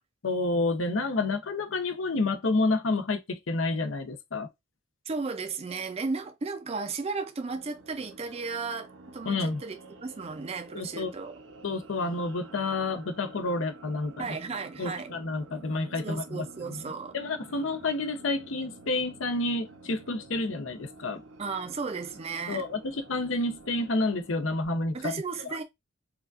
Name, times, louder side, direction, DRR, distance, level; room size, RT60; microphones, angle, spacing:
voice 1, 0.2-4.5 9.3-9.6 10.7-11.1 11.6-14.3 14.8-16.8 17.1-21.2 22.5-25.2 25.5-25.6, left 2 dB, 70° left, 0.6 m, -29 dB
voice 2, 5.1-11.3 14.2-15.1 16.0-17.2 21.4-22.6 24.9-25.6, right 4 dB, 30° right, 0.4 m, -35 dB
sound 1, 7.4-24.7, right 2 dB, 65° right, 0.7 m, -50 dB
4.8 x 2.4 x 2.4 m
head